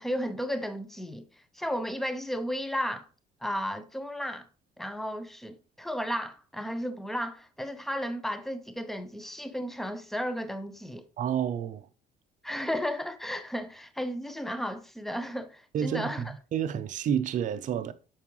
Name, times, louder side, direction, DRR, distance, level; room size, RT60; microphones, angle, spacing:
voice 1, 0.0-3.1 3.4-4.5 4.8-11.1 12.4-16.3, equal, ahead, 0.6 m, -34 dB
voice 2, 11.2-11.9 15.7-16.1 16.5-17.9, right 9 dB, 50° right, 0.5 m, -29 dB
7.3 x 4.7 x 3.0 m
cardioid pair, 110°, 17 cm